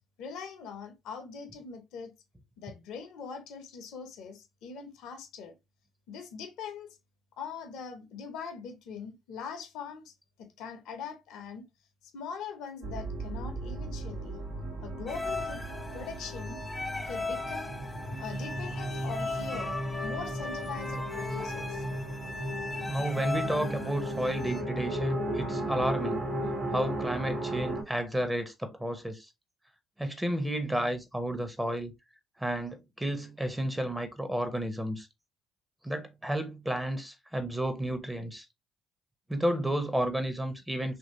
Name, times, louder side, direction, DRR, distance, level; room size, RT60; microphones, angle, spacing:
voice 1, 0.2-2.1 2.6-5.5 6.1-7.0 7.4-10.1 10.4-11.6 12.0-14.4 14.8-15.7 15.9-16.6 17.0-17.8 18.2-21.8, left 6 dB, 70° left, 0.7 m, -42 dB
sound 1, 12.8-27.8, right 1 dB, 75° right, 1.0 m, -35 dB
sound 2, 15.1-24.6, left 3 dB, 15° left, 0.5 m, -38 dB
voice 2, 22.9-26.3 26.7-29.3 30.0-31.9 32.4-35.1 35.8-38.4 39.3-41.0, right 1 dB, 10° right, 0.8 m, -31 dB
2.9 x 2.7 x 2.7 m
hypercardioid pair, 55°, 0 cm